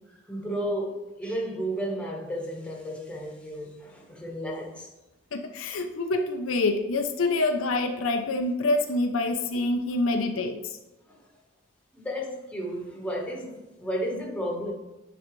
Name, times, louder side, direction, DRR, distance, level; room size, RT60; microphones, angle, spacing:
voice 1, 0.3-4.9 11.1-11.2 11.9-14.7, equal, 5° left, 1.2 m, -33 dB
voice 2, 5.3-10.8, left 2 dB, 75° left, 0.6 m, -26 dB
9.9 x 3.9 x 3.1 m
head